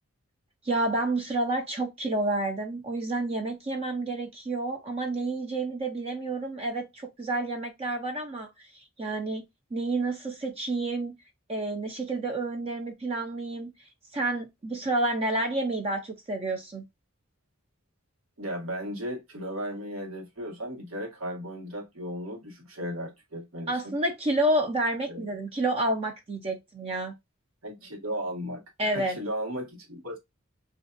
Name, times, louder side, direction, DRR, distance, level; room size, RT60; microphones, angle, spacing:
voice 1, 0.6-9.4 9.7-11.2 11.5-13.7 14.1-16.8 23.7-27.1 28.8-29.2, right 2 dB, 30° right, 0.4 m, -29 dB
voice 2, 18.4-23.9 25.1-25.2 27.6-30.2, equal, 85° right, 1.2 m, -36 dB
2.5 x 2.3 x 2.4 m
head